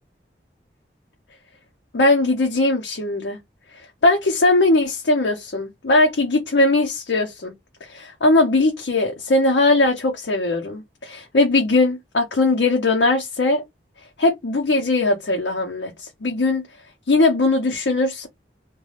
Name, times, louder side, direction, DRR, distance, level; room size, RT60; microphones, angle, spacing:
voice 1, 1.9-3.4 4.0-7.5 7.9-13.6 14.2-16.6 17.1-18.3, left 2 dB, 75° left, 0.6 m, -19 dB
2.4 x 2.2 x 3.2 m
head